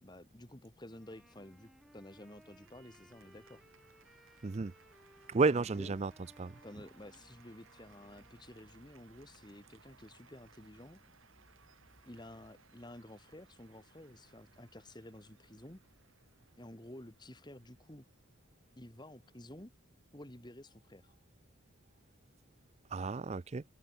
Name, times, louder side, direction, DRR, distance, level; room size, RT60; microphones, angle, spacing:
voice 1, 0.0-3.6 5.5-5.9 6.6-11.0 12.0-15.8 16.6-18.1 18.8-19.7 20.1-21.1, left 1 dB, 20° left, 1.7 m, -52 dB
Wind instrument woodwind instrument, 0.9-8.8, equal, ahead, 5.1 m, -63 dB
Cheering / Applause, 1.1-20.3, right 5 dB, 65° right, 4.3 m, -67 dB
voice 2, 4.4-4.7 5.3-6.1 6.4-6.6 22.9-23.6, right 4 dB, 30° right, 0.4 m, -31 dB
sound 1, 6.9-12.5, equal, 35° left, 5.3 m, -70 dB
open air
head